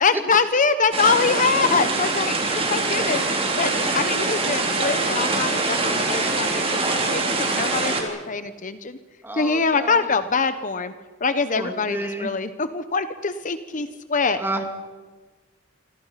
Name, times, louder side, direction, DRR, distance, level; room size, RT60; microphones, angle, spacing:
voice 1, 0.0-6.8 7.1-9.0 9.3-10.9 11.2-14.4, left 4 dB, 40° left, 11 dB, 1.0 m, -24 dB
sound 1, 0.9-8.0, right 3 dB, 30° right, 3.9 m, -23 dB
voice 2, 9.2-9.9 11.6-12.3 14.4-14.6, right 1 dB, 10° right, 4 dB, 2.8 m, -31 dB
27.5 x 24.5 x 5.8 m, 1.4 s
head